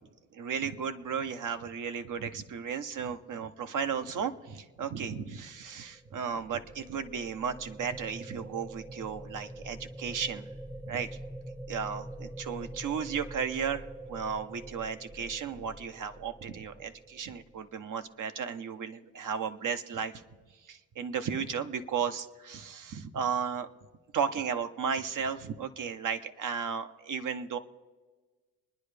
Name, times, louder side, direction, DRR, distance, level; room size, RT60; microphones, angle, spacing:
voice 1, 0.3-10.4 10.9-11.1 11.7-20.1 20.6-23.7 24.1-27.6, right 7 dB, 55° right, 9 dB, 0.9 m, -34 dB
sound 1, 5.7-17.9, right 1 dB, 5° right, 0.8 m, -45 dB
24.0 x 10.0 x 3.4 m, 1.3 s
cardioid pair, 80°, 37 cm